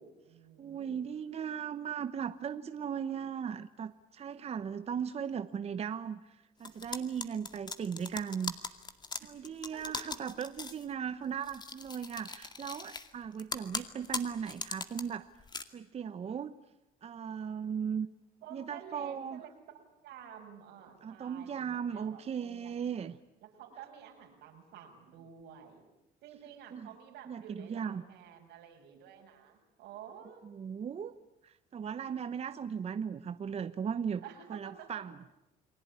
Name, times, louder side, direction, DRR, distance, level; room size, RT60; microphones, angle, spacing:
voice 1, 0.0-1.0 9.2-9.3 9.7-10.1 18.4-19.5 20.0-22.7 23.4-25.8 26.2-30.5 34.2-34.9, right 8 dB, 85° right, 3 dB, 6.5 m, -51 dB
voice 2, 0.6-8.5 9.2-15.3 15.7-16.5 17.0-18.1 18.5-19.4 21.0-23.2 26.7-26.9 27.3-28.0 30.4-31.1 31.4-34.2 34.5-35.3, right 7 dB, 40° right, 11 dB, 1.0 m, -37 dB
sound 1, 6.6-10.8 11.4-13.1 13.4-15.0 15.4-15.6, left 4 dB, 25° left, 2.2 m, -39 dB
29.5 x 20.5 x 9.8 m, 0.91 s
cardioid pair, 110°, 17 cm